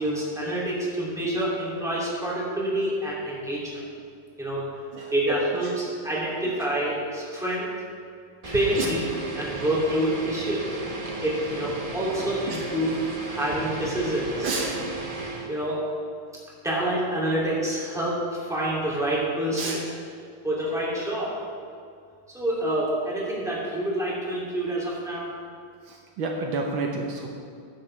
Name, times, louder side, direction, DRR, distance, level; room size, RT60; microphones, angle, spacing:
voice 1, 0.0-3.8 4.4-4.7 5.1-5.7 6.0-7.7 8.4-9.0 9.4-10.7 11.2-12.9 13.2-14.5 15.5-15.8 16.6-19.8 20.4-21.4 22.3-25.3, right 1 dB, ahead, -7 dB, 2.4 m, -27 dB
voice 2, 4.9-5.7 8.7-8.9 12.2-12.7 13.3-13.4 14.3-14.9 19.5-19.9 25.8-27.3, right 3 dB, 70° right, 1 dB, 1.6 m, -31 dB
sound 1, 8.4-15.5, right 2 dB, 25° right, 0.8 m, -34 dB
14.0 x 10.0 x 3.3 m, 2.3 s
omnidirectional pair, 2.3 m